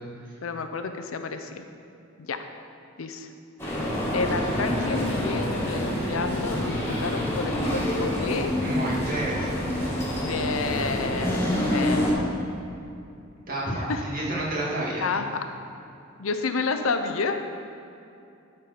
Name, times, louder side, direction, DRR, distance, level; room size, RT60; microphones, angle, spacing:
voice 1, 0.4-1.6 2.2-2.4 3.0-3.3 4.1-8.5 10.2-12.3 13.7-14.2 15.0-15.3 16.2-17.4, left 4 dB, 80° left, 7 dB, 0.6 m, -30 dB
sound 1, 3.6-12.1, left 1 dB, 15° left, 2.0 m, -27 dB
voice 2, 8.6-9.5 13.5-15.2, right 1 dB, 45° right, -6 dB, 2.1 m, -30 dB
12.5 x 4.5 x 5.1 m, 2.6 s
head